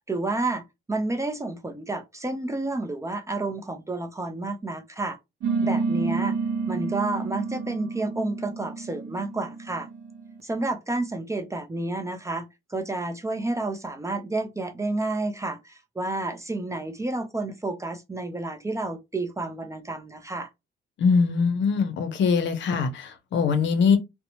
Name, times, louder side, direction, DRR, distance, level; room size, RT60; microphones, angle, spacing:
voice 1, 0.0-5.2 5.6-6.4 6.7-9.9 10.4-20.5, right 2 dB, 15° right, 0.5 m, -30 dB
sound 1, 5.4-10.4, right 4 dB, 65° right, 0.6 m, -29 dB
voice 2, 21.0-24.0, left 5 dB, 70° left, 0.6 m, -22 dB
2.8 x 2.1 x 2.7 m
cardioid pair, 90°, 20 cm